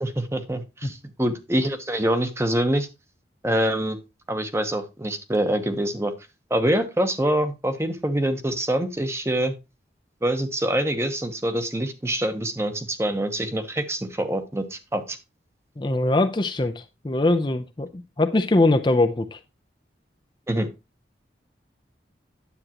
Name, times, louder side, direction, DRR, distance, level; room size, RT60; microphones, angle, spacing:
voice 1, 0.0-2.9 3.4-4.0 4.3-6.1 6.5-9.5 10.2-15.2 20.5-20.7, right 1 dB, 15° right, 8 dB, 0.9 m, -25 dB
voice 2, 15.8-19.4, left 2 dB, 25° left, 6 dB, 0.5 m, -22 dB
9.9 x 8.0 x 2.9 m, 0.25 s
head